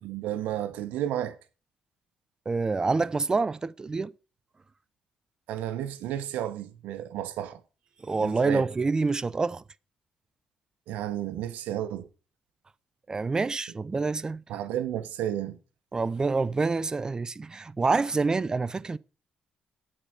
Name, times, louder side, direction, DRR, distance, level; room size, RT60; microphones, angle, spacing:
voice 1, 0.0-1.4 5.5-7.6 8.2-8.6 10.9-12.1 14.5-15.6, right 11 dB, 85° right, 1.1 m, -32 dB
voice 2, 2.5-4.1 8.0-9.6 13.1-14.4 15.9-19.0, right 4 dB, 30° right, 0.5 m, -27 dB
9.0 x 4.9 x 7.4 m
cardioid pair, 80°, 3 cm